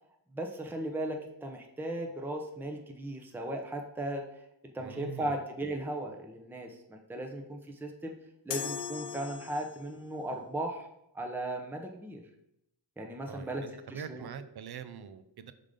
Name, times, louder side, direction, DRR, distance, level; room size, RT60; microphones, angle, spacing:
voice 1, 0.3-4.3 4.7-8.1 8.4-10.9 11.1-12.2 13.0-14.3, right 1 dB, 5° right, 2 dB, 0.7 m, -37 dB
voice 2, 4.8-5.4 13.2-15.5, right 7 dB, 55° right, 12 dB, 0.6 m, -44 dB
sound 1, 8.5-10.0, left 7 dB, 65° left, 0.8 m, -39 dB
5.0 x 3.8 x 5.0 m, 0.80 s
wide cardioid pair, 80°, 46 cm